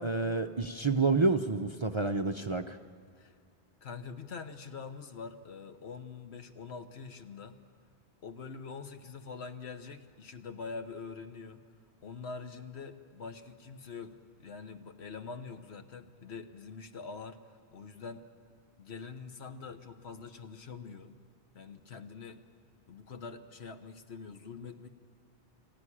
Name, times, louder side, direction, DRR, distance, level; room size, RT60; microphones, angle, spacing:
voice 1, 0.0-2.8, right 3 dB, 35° right, 8 dB, 0.5 m, -29 dB
voice 2, 3.8-7.6 8.2-11.6 12.0-17.4 17.7-18.3 18.8-21.1 21.5-22.4 22.9-24.9, left 5 dB, 70° left, 8 dB, 1.4 m, -44 dB
23.5 x 14.5 x 10.0 m, 2.3 s
omnidirectional pair, 1.1 m